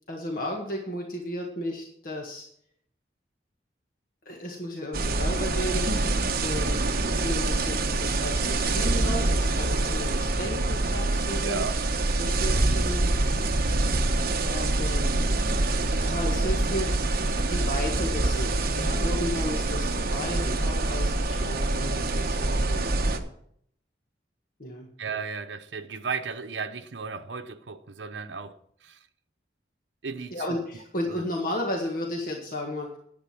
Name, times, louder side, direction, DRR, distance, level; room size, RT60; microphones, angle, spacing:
voice 1, 0.1-2.4 4.2-5.9 6.4-6.8 7.1-11.6 12.2-13.1 14.4-15.1 15.9-17.1 17.5-23.2 24.6-24.9 30.3-33.0, left 1 dB, 50° left, 1.7 m, -34 dB
sound 1, 4.9-23.2, right 2 dB, 55° right, 1.1 m, -25 dB
voice 2, 11.4-11.8 25.0-28.6 28.8-29.0 30.0-30.6 31.1-31.2, right 5 dB, 85° right, 0.9 m, -34 dB
10.5 x 8.7 x 6.0 m
head